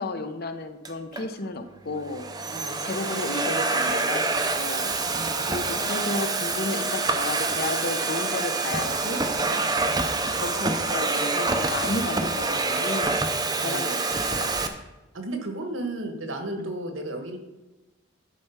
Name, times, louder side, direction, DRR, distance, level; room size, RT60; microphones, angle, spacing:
voice 1, 0.0-2.3 2.8-4.9 5.4-9.3 10.4-13.2 13.6-14.7 16.6-16.7, left 2 dB, 50° left, 8 dB, 0.7 m, -33 dB
Domestic sounds home sounds, 0.8-1.2 2.0-14.7, right 3 dB, 20° right, 0.6 m, -26 dB
voice 2, 5.1-5.5 9.8-10.0 13.6-13.8 15.1-17.4, right 2 dB, 75° right, 5 dB, 1.4 m, -34 dB
11.0 x 4.6 x 5.7 m, 1.1 s
head